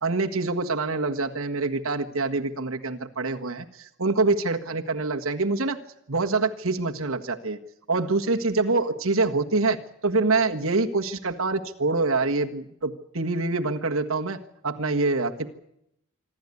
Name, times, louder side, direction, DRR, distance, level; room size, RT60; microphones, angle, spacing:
voice 1, 0.0-5.8 6.1-7.6 7.9-15.5, right 3 dB, 70° right, 3 dB, 1.6 m, -25 dB
26.0 x 12.5 x 9.8 m, 0.79 s
head